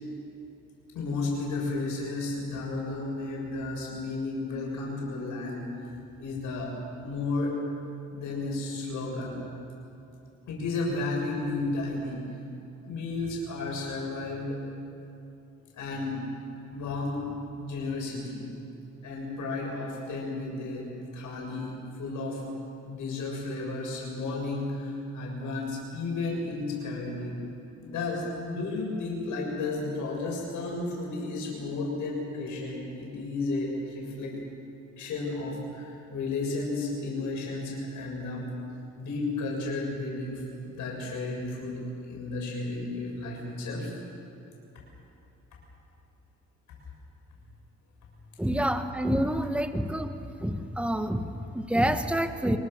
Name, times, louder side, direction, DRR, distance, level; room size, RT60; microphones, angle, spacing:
voice 1, 0.9-5.7 6.2-6.7 7.0-7.5 8.1-9.3 10.5-12.2 12.8-14.6 15.7-16.2 16.7-17.2 17.6-18.4 19.0-20.9 21.1-22.4 22.8-27.3 27.8-34.3 35.0-38.4 39.0-40.4 40.7-41.8 42.1-43.9, left 3 dB, 80° left, -2 dB, 6.7 m, -33 dB
voice 2, 48.4-50.1 50.4-52.6, equal, 5° right, 8 dB, 1.4 m, -27 dB
24.5 x 24.5 x 6.6 m, 2.9 s
cardioid pair, 90°, 30 cm